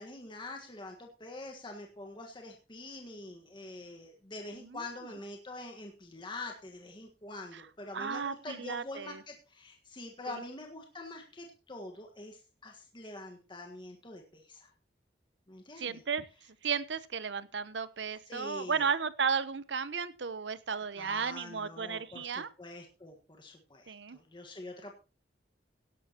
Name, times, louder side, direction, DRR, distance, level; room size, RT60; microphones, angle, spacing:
voice 1, 0.0-14.7 15.5-16.0 18.3-18.9 21.0-24.9, left 2 dB, 25° left, 2 dB, 1.5 m, -45 dB
voice 2, 7.9-9.2 10.3-10.4 15.8-16.2 16.6-22.5 23.9-24.2, right 6 dB, 85° right, 15 dB, 0.9 m, -34 dB
17.0 x 12.0 x 3.0 m, 0.33 s
head